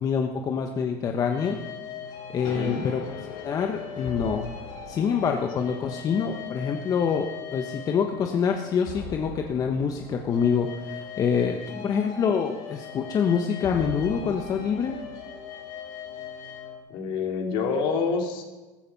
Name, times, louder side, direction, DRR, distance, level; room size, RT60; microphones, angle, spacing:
voice 1, 0.0-1.6 2.3-3.0 3.4-4.4 4.9-7.3 7.5-11.6 11.8-15.0, left 6 dB, 40° left, 4 dB, 1.2 m, -26 dB
sound 1, 1.3-16.8, left 6 dB, 80° left, 5.5 m, -39 dB
voice 2, 2.4-2.9 11.7-11.9 16.9-18.4, left 5 dB, 60° left, 3 dB, 2.8 m, -28 dB
15.0 x 14.0 x 5.6 m, 1.2 s
supercardioid pair, 110°, 9 cm